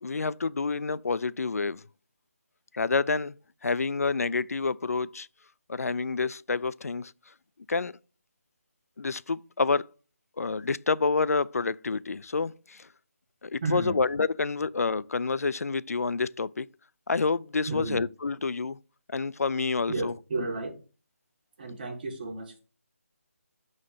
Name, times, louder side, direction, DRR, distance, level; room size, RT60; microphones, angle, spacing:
voice 1, 0.0-1.8 2.7-3.4 3.6-5.3 5.7-7.1 7.7-7.9 9.0-9.9 10.4-12.9 13.4-16.7 17.1-18.8 19.1-20.1, left 4 dB, 90° left, 0.3 m, -28 dB
voice 2, 13.6-14.0 17.7-18.0 19.9-20.8 21.6-22.6, right 2 dB, 35° right, 1.6 m, -32 dB
6.2 x 4.0 x 5.6 m
figure-of-eight pair, 165°, 8 cm